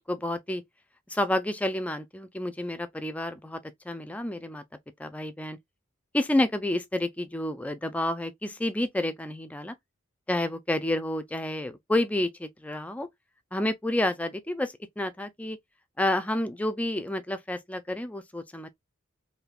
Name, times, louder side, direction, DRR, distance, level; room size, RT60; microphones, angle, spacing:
voice 1, 0.1-0.6 1.1-3.6 3.9-4.6 5.0-5.6 6.1-9.7 10.3-13.1 13.5-15.6 16.0-18.7, left 1 dB, 5° left, 0.3 m, -29 dB
3.3 x 2.7 x 2.3 m
head